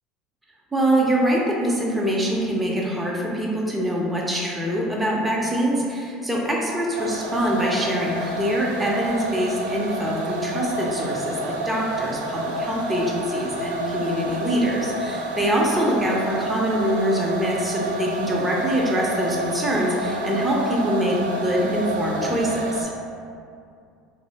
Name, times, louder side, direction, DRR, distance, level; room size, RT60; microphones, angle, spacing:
voice 1, 0.7-22.9, equal, 15° right, -3 dB, 0.7 m, -24 dB
sound 1, 6.9-22.8, right 1 dB, 80° right, 0.4 m, -29 dB
3.0 x 2.0 x 4.0 m, 2.4 s
hypercardioid pair, 75°, 0 cm